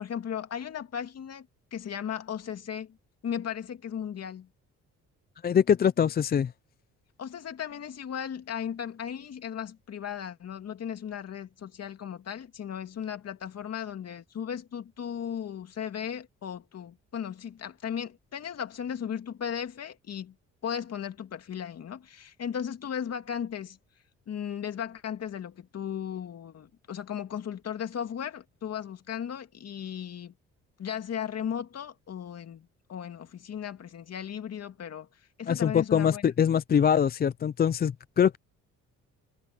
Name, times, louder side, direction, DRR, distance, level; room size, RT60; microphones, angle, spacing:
voice 1, 0.0-3.0 3.2-4.5 7.2-20.3 20.6-23.8 24.3-30.3 30.8-35.1 35.4-36.3, left 8 dB, 55° left, 2.4 m, -36 dB
voice 2, 5.4-6.5 35.5-38.4, left 8 dB, 30° left, 0.4 m, -23 dB
cardioid pair, 90°, 30 cm